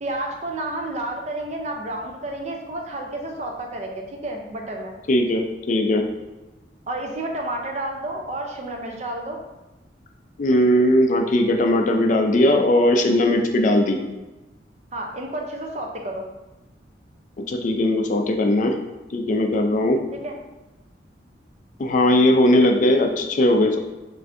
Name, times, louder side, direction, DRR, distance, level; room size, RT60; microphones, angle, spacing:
voice 1, 0.0-4.9 6.9-9.4 14.9-16.2 20.1-20.4, right 1 dB, 40° right, 2 dB, 0.5 m, -30 dB
voice 2, 5.1-6.0 10.4-14.0 17.5-18.7 19.1-20.0 21.8-23.8, left 1 dB, 45° left, 4 dB, 0.4 m, -19 dB
5.4 x 2.6 x 2.6 m, 1.1 s
head